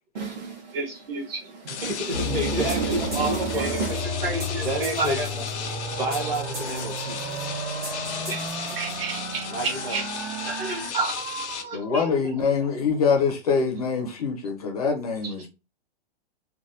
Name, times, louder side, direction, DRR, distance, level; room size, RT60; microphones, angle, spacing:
voice 1, 0.1-0.8 1.2-4.0 4.6-5.2 6.0-7.4 9.5-10.0, right 2 dB, 40° right, 1.1 m, -30 dB
voice 2, 0.7-1.5 2.5-3.8 4.2-5.4 8.3-8.4 8.7-10.0 10.5-12.1 15.2-15.3, right 3 dB, 60° right, 1.4 m, -31 dB
sound 1, 1.7-11.6, left 7 dB, 80° left, 0.8 m, -36 dB
sound 2, 2.1-10.9, equal, 80° right, 1.4 m, -32 dB
sound 3, 2.7-9.4, equal, 10° right, 0.6 m, -41 dB
voice 3, 11.7-15.5, left 5 dB, 35° left, 0.5 m, -24 dB
3.3 x 2.2 x 2.6 m
hypercardioid pair, 180°, 33 cm